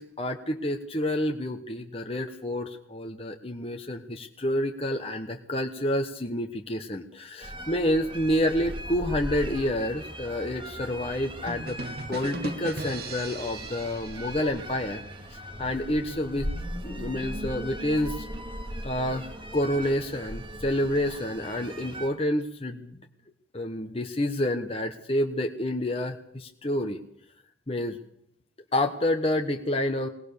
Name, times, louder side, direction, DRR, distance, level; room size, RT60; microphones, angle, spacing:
voice 1, 0.0-11.8 12.1-15.0 15.3-16.5 16.8-18.3 18.8-22.9 23.5-27.0 27.7-28.0 28.7-30.1, left 1 dB, 30° left, 4 dB, 1.2 m, -29 dB
sound 1, 7.4-22.1, equal, 25° right, 2.6 m, -38 dB
sound 2, 11.5-15.2, right 2 dB, 50° right, 2.1 m, -38 dB
20.5 x 19.0 x 6.8 m, 0.72 s
head